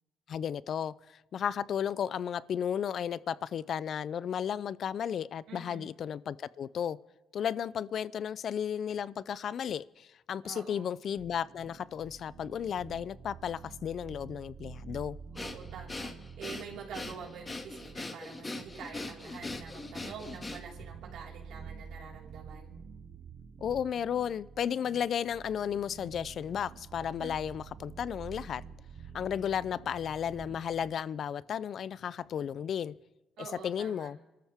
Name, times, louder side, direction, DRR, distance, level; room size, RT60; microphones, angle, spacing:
voice 1, 0.3-7.0 7.3-15.2 23.6-28.6 29.1-32.9 33.4-34.2, left 8 dB, 60° left, 0.5 m, -34 dB
voice 2, 5.5-5.9 10.4-11.0 15.3-16.1 16.4-22.8 27.2-27.3 33.4-34.1, right 6 dB, 80° right, 4.7 m, -46 dB
sound 1, 11.2-30.9, right 6 dB, 65° right, 0.8 m, -49 dB
Breathing, 15.3-20.9, left 2 dB, 25° left, 2.0 m, -41 dB
27.0 x 13.5 x 3.6 m
cardioid pair, 90°, 0 cm